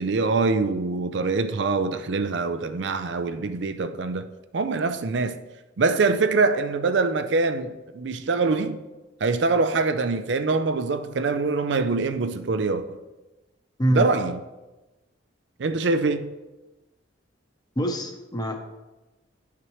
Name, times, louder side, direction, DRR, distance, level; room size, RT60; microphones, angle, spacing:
voice 1, 0.0-4.2 4.5-5.4 5.8-8.8 9.2-13.0 13.9-14.4 15.6-16.3, right 3 dB, 65° right, 0.5 m, -24 dB
voice 2, 17.8-18.6, equal, 20° left, 0.8 m, -24 dB
11.0 x 5.9 x 3.1 m
head